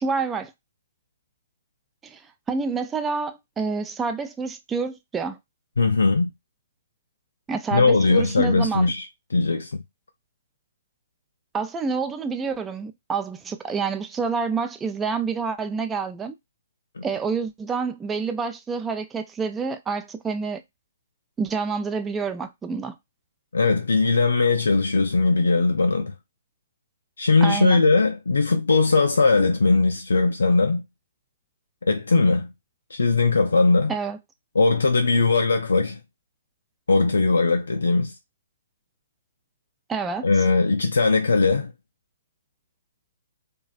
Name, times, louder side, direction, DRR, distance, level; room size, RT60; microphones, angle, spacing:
voice 1, 0.0-0.5 2.0-2.2 2.5-5.4 7.5-8.9 11.5-16.3 17.0-20.6 21.4-23.0 27.4-27.8 33.9-34.2 39.9-40.3, right 5 dB, 15° right, 0.3 m, -28 dB
voice 2, 5.8-6.3 7.7-9.8 17.0-17.1 23.5-26.1 27.2-30.8 31.8-32.5 32.9-33.9 34.5-36.0 36.9-38.1 40.2-41.7, left 3 dB, 80° left, 0.3 m, -20 dB
2.4 x 2.2 x 2.3 m
hypercardioid pair, 130°, 0 cm